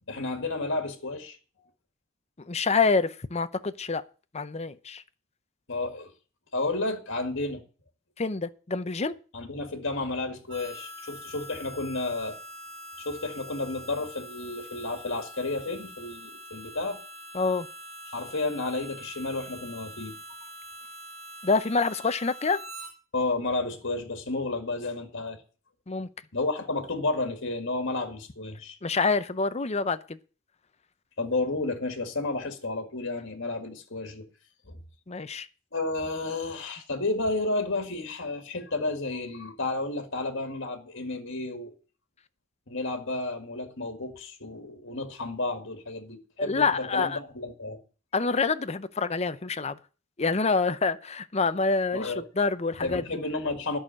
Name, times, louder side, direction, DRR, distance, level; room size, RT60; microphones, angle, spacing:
voice 1, 0.1-1.7 5.7-6.1 6.5-7.6 9.3-12.4 13.0-17.0 18.1-20.2 23.1-25.4 26.3-28.8 31.2-34.3 34.7-34.8 35.7-41.8 42.7-47.8 51.9-52.3 52.8-53.8, left 2 dB, 60° left, 2.0 m, -31 dB
voice 2, 2.5-4.0 4.3-5.0 8.2-9.1 17.3-17.7 21.4-22.6 25.9-26.1 28.8-30.2 35.1-35.5 46.4-47.2 48.1-49.8 50.2-53.0, left 4 dB, 30° left, 0.7 m, -26 dB
Harmonica, 10.5-22.9, equal, 70° right, 4.1 m, -44 dB
11.0 x 6.4 x 8.8 m
head